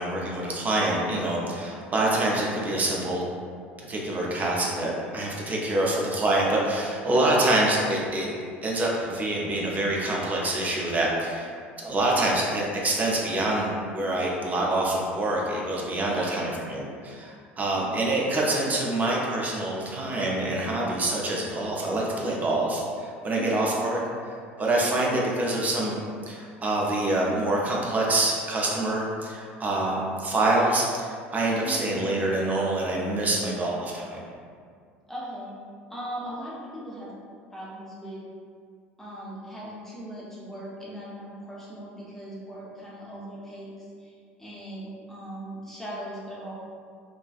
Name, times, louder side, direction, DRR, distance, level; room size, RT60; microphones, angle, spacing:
voice 1, 0.0-3.3 3.9-8.3 8.6-11.5 11.8-24.0 24.3-25.9 26.3-34.2, right 1 dB, 25° right, -3 dB, 0.5 m, -26 dB
voice 2, 16.1-16.6 17.7-18.1 23.3-23.8 31.6-31.9 35.1-35.5 35.9-37.1 37.5-38.2 39.0-46.5, right 1 dB, 5° left, -8 dB, 0.8 m, -39 dB
2.5 x 2.3 x 2.4 m, 2.1 s
figure-of-eight pair, 65°, 7 cm